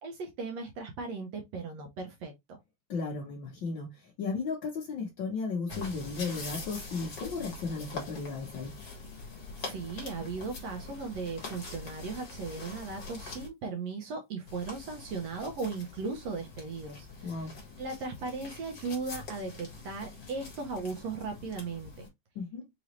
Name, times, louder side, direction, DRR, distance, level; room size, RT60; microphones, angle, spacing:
voice 1, 0.0-2.6 9.6-17.5 17.8-22.1, right 4 dB, 70° right, 1.6 m, -37 dB
voice 2, 2.9-8.7 17.2-17.5 22.3-22.7, left 4 dB, 85° left, 1.0 m, -35 dB
sound 1, 5.7-13.5 14.5-22.1, left 3 dB, 45° left, 1.6 m, -44 dB
5.4 x 3.0 x 3.0 m
omnidirectional pair, 3.9 m